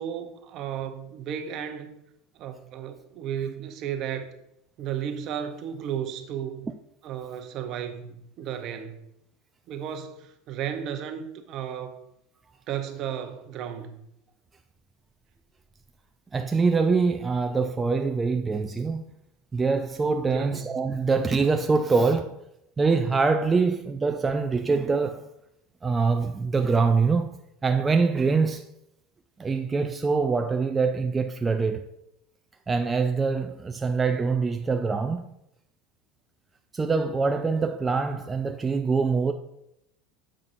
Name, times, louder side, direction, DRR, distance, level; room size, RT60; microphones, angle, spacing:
voice 1, 0.0-2.0 2.4-4.3 4.8-6.7 7.0-9.0 9.7-12.0 12.7-14.0 20.3-20.7, right 9 dB, 50° right, 0.7 m, -34 dB
voice 2, 16.3-19.1 19.5-22.4 22.8-25.2 25.8-27.3 27.6-28.6 29.4-31.8 32.7-35.2 36.7-39.3, right 4 dB, 20° right, 0.3 m, -24 dB
7.4 x 5.4 x 2.6 m
supercardioid pair, 105°, 0 cm